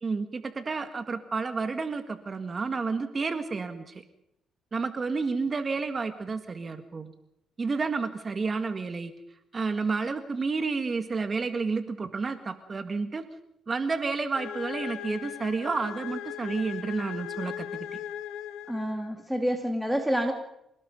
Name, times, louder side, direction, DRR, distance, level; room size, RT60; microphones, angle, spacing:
voice 1, 0.0-4.0 4.7-7.1 7.6-9.1 9.5-13.2 13.7-18.0, right 4 dB, 35° right, 9 dB, 1.8 m, -30 dB
sound 1, 14.3-19.2, left 11 dB, 90° left, 1.7 m, -38 dB
voice 2, 18.7-20.3, equal, 5° right, 4 dB, 2.3 m, -28 dB
26.5 x 18.5 x 5.4 m, 0.81 s
cardioid pair, 90°, 0 cm